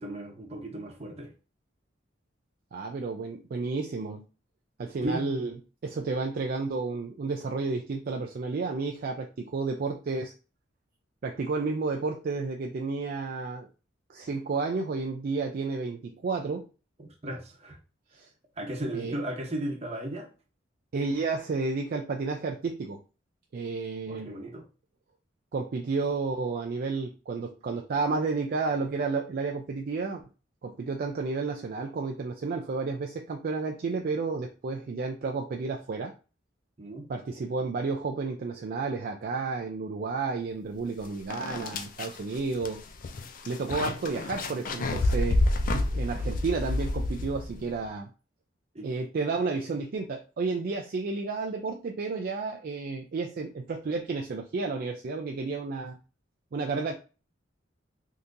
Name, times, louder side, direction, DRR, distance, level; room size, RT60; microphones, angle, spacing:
voice 1, 0.0-1.3 5.0-5.3 17.0-17.8 18.6-20.3 24.1-24.7 36.8-37.1 45.7-46.2 48.7-48.9, right 1 dB, 35° right, 0.8 m, -36 dB
voice 2, 2.7-4.2 4.8-5.5 5.8-10.3 11.2-13.7 14.1-16.7 18.2-18.3 18.9-19.2 20.9-23.0 23.5-24.3 25.5-30.2 30.6-36.1 37.1-42.8 43.5-45.4 45.9-48.1 48.8-56.0 56.5-56.9, right 4 dB, 50° right, 0.4 m, -31 dB
sound 1, 40.8-40.9 41.3-47.7, left 2 dB, 45° left, 0.4 m, -29 dB
3.6 x 2.8 x 2.5 m
head